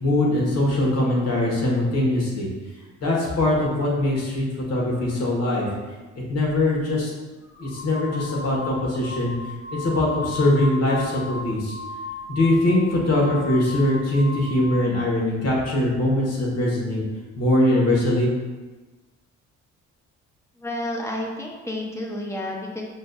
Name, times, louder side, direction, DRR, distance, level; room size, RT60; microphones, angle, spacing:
voice 1, 0.0-2.5 3.0-5.7 6.1-7.1 7.6-9.3 9.7-11.8 12.3-17.0 17.4-18.3, left 1 dB, 55° left, -3 dB, 1.3 m, -22 dB
sound 1, 7.4-15.1, left 3 dB, 40° left, 1.1 m, -36 dB
voice 2, 20.6-22.8, left 1 dB, 10° left, -1 dB, 0.7 m, -30 dB
6.0 x 2.6 x 2.3 m, 1.2 s
cardioid pair, 90°, 30 cm